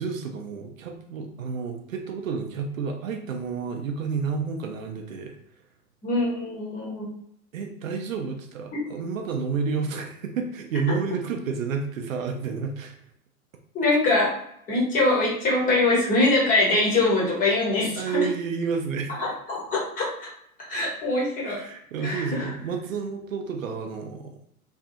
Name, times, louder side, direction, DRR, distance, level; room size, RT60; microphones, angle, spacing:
voice 1, 0.0-5.4 7.5-12.9 18.0-19.2 21.4-24.3, right 5 dB, 60° right, 4 dB, 0.6 m, -30 dB
voice 2, 6.0-7.1 8.7-8.8 13.7-14.3 14.7-18.2 19.2-20.3 20.7-21.6 22.0-22.5, left 2 dB, 20° left, -4 dB, 0.8 m, -23 dB
2.6 x 2.3 x 2.5 m, 0.74 s
figure-of-eight pair, 105°, 45 cm